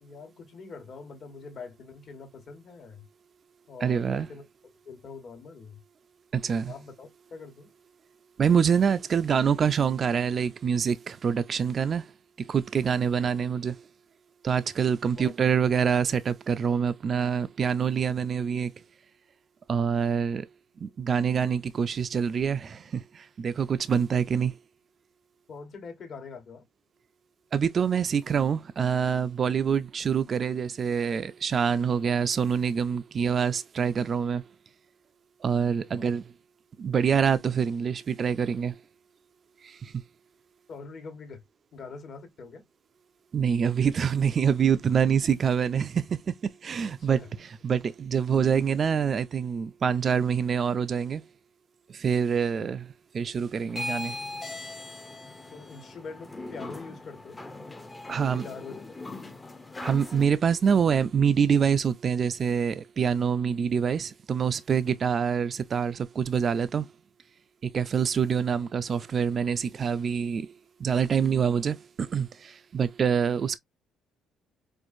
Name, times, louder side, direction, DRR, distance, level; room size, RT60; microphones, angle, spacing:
voice 1, 0.0-3.1 3.7-4.4 4.8-5.8 6.7-7.7 15.1-15.3 25.5-26.6 35.9-36.1 40.7-41.4 41.7-42.6 44.7-44.8 47.0-47.4 52.4-52.7 55.5-57.4 58.2-58.8 64.8-65.0, left 4 dB, 50° left, 1.2 m, -44 dB
voice 2, 3.8-4.3 6.3-6.7 8.4-12.1 12.4-13.8 14.4-18.7 19.7-20.5 20.8-24.6 27.5-34.5 35.4-36.2 36.8-38.8 39.6-40.0 43.3-47.2 47.6-51.2 51.9-52.8 53.1-54.2 58.1-58.5 59.8-66.9 67.6-70.5 70.8-73.6, right 7 dB, 40° right, 0.3 m, -26 dB
sound 1, 53.7-60.2, left 2 dB, 15° left, 0.6 m, -39 dB
4.4 x 2.4 x 2.4 m
cardioid pair, 105°, 0 cm